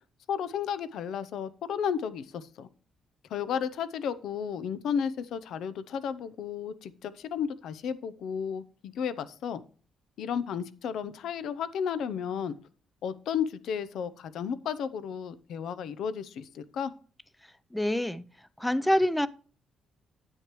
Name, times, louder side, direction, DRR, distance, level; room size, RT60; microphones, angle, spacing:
voice 1, 0.3-2.7 3.3-9.6 10.2-12.6 13.0-16.9, left 7 dB, 75° left, 0.7 m, -33 dB
voice 2, 17.7-18.2 18.6-19.3, equal, 5° left, 0.6 m, -26 dB
9.8 x 8.3 x 3.1 m
cardioid pair, 90°, 0 cm